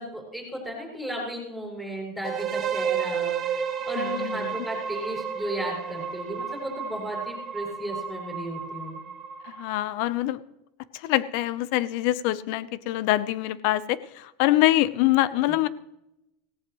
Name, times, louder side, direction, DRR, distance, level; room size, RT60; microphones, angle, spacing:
voice 1, 0.0-9.0 15.2-15.3, right 1 dB, 5° left, -3 dB, 6.3 m, -35 dB
sound 1, 2.2-10.0, right 7 dB, 30° right, 1.8 m, -32 dB
voice 2, 4.0-4.5 9.4-10.4 10.9-15.7, left 16 dB, 55° left, 16 dB, 0.8 m, -25 dB
18.0 x 17.5 x 3.1 m, 0.87 s
supercardioid pair, 160°, 0 cm